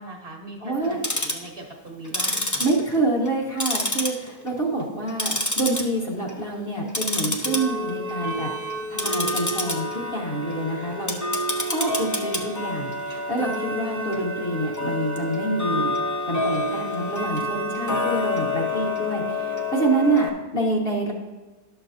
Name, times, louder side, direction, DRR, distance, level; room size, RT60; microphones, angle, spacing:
voice 1, 0.0-2.7, right 2 dB, 45° right, 0 dB, 1.2 m, -40 dB
voice 2, 0.6-1.0 2.6-8.5 8.9-11.2 11.6-15.9 16.3-21.1, right 2 dB, 40° left, -3 dB, 1.8 m, -27 dB
Tick-tock, 0.8-1.5 2.0-3.3 3.6-4.5 4.8-5.8 6.2-6.5 6.9-20.3, left 1 dB, 20° left, 0.4 m, -28 dB
12.0 x 6.9 x 2.7 m, 1.2 s
omnidirectional pair, 1.6 m